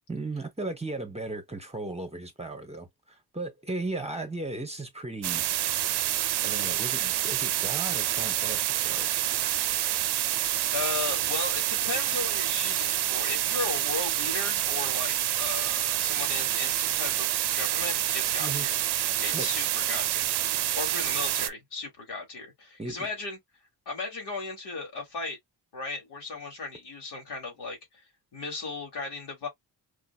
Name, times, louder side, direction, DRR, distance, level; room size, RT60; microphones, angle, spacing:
voice 1, 0.1-5.4 6.4-9.1 18.4-18.7 19.3-19.5 22.8-23.1, right 2 dB, 15° right, 0.9 m, -36 dB
sound 1, 5.2-21.5, right 12 dB, 80° right, 0.6 m, -27 dB
voice 2, 10.7-18.8 19.2-23.4 23.9-25.4 25.7-28.0 28.3-29.5, left 3 dB, 85° left, 2.7 m, -36 dB
4.9 x 2.8 x 2.2 m
cardioid pair, 105°, 39 cm